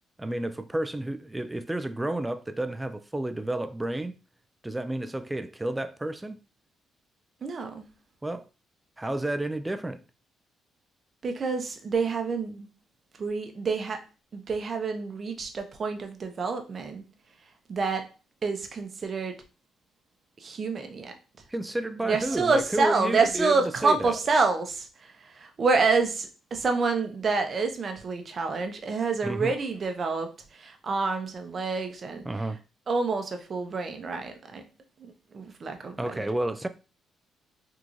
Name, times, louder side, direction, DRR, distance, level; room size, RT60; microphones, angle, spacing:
voice 1, 0.2-4.1 4.6-6.4 8.2-8.5 9.0-10.0 21.5-24.2 29.2-29.5 32.3-32.6 36.0-36.7, right 1 dB, 10° right, 0.3 m, -31 dB
voice 2, 7.4-7.9 11.2-12.7 13.2-14.0 14.3-17.0 17.7-18.0 18.4-19.3 20.4-21.1 22.0-32.2 32.9-34.6 35.0-36.2, right 4 dB, 45° right, 0.7 m, -28 dB
3.6 x 3.0 x 2.5 m
cardioid pair, 90°, 0 cm